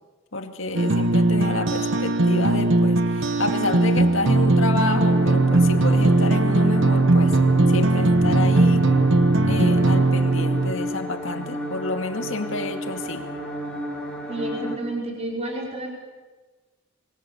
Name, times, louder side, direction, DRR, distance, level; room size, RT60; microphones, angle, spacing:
voice 1, 0.3-7.4 7.7-8.9 9.5-13.3, left 2 dB, 60° left, 5 dB, 2.2 m, -29 dB
sound 1, 0.7-10.7, right 2 dB, 60° right, 1.2 m, -19 dB
sound 2, 4.8-14.8, equal, 5° left, 6.9 m, -32 dB
sound 3, 7.2-10.1, left 2 dB, 30° left, 0.7 m, -36 dB
voice 2, 14.3-15.9, right 1 dB, 30° right, -1 dB, 4.7 m, -30 dB
26.0 x 23.5 x 7.0 m, 1.3 s
head